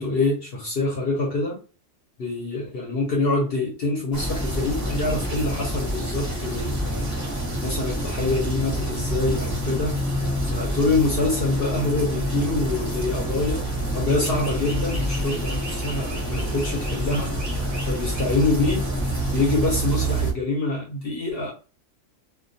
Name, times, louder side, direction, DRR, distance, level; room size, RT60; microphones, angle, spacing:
voice 1, 0.0-1.6 2.2-7.1 7.5-9.9 10.5-13.6 13.9-17.3 17.8-18.9 19.3-21.5, left 2 dB, 55° left, 0.8 m, -25 dB
sound 1, 4.1-20.3, right 1 dB, 15° right, 0.6 m, -27 dB
2.3 x 2.2 x 2.6 m
omnidirectional pair, 1.4 m